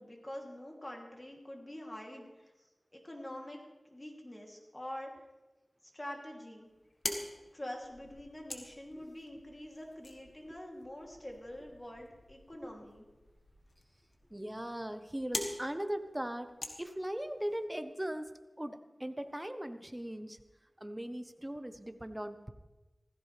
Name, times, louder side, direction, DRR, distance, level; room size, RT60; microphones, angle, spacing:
voice 1, 0.0-2.7 2.9-5.2 5.9-6.7 7.5-13.1, left 1 dB, 30° left, 0 dB, 2.9 m, -46 dB
sound 1, 6.6-17.6, left 2 dB, 60° left, 1.8 m, -45 dB
voice 2, 14.3-16.5 16.8-18.3 18.6-20.4 20.8-22.5, right 1 dB, 15° right, 9 dB, 1.0 m, -39 dB
16.5 x 15.0 x 3.4 m, 1.1 s
wide cardioid pair, 50°, 0 cm